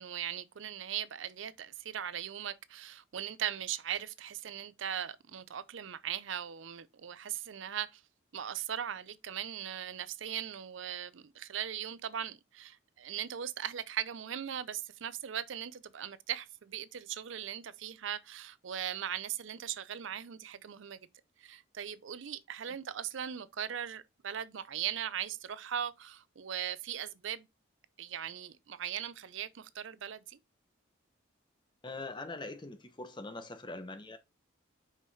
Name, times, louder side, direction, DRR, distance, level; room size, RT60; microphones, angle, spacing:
voice 1, 0.0-8.0 8.3-21.1 21.4-27.5 28.0-30.4, right 9 dB, 70° right, 0.5 m, -39 dB
voice 2, 31.8-34.2, left 2 dB, 20° left, 0.8 m, -42 dB
5.5 x 4.7 x 4.1 m
head